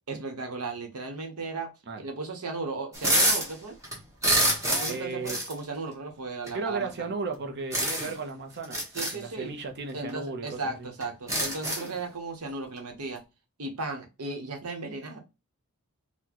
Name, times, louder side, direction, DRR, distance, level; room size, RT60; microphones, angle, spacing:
voice 1, 0.1-1.7 2.0-3.8 4.7-7.1 8.9-9.5 9.9-13.2 13.6-15.2, right 3 dB, 80° right, 1.0 m, -36 dB
sound 1, 2.9-3.5 3.8-5.0 5.3-5.5 6.5-6.6 7.7-8.2 8.6-9.1 10.1-10.2 10.5-10.6 11.0-11.9, right 1 dB, 15° right, 1.0 m, -26 dB
voice 2, 4.9-5.4 6.5-8.8 9.1-10.9, right 4 dB, 50° right, 0.7 m, -35 dB
4.1 x 2.2 x 2.9 m
head